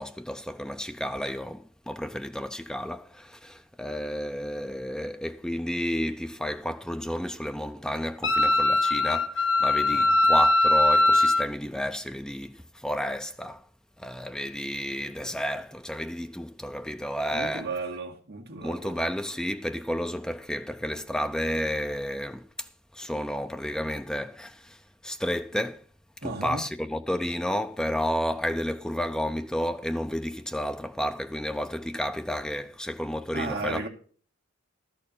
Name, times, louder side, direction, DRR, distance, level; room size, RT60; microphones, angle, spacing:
voice 1, 0.0-13.6 14.0-17.7 18.6-22.7 22.9-25.8 26.2-33.9, equal, 5° left, 0.6 m, -31 dB
Wind instrument woodwind instrument, 8.2-11.5, left 2 dB, 65° left, 1.1 m, -21 dB
voice 2, 17.3-19.0 26.2-26.6 33.3-33.9, right 3 dB, 50° right, 1.9 m, -34 dB
12.5 x 4.5 x 8.5 m
head